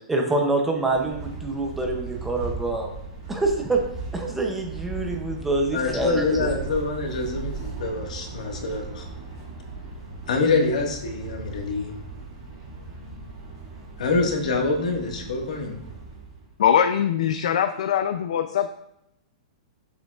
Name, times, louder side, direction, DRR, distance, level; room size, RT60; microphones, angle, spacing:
voice 1, 0.1-2.9 3.3-3.8 4.1-6.6, right 2 dB, 5° right, 1 dB, 0.6 m, -26 dB
sound 1, 0.8-16.5, right 4 dB, 20° right, 2.2 m, -37 dB
voice 2, 5.7-9.0 10.3-11.9 14.0-15.8, left 3 dB, 80° left, 2 dB, 1.6 m, -25 dB
voice 3, 16.6-18.7, left 9 dB, 60° left, 8 dB, 0.4 m, -22 dB
7.7 x 7.0 x 2.4 m, 0.82 s
hypercardioid pair, 175°, 4 cm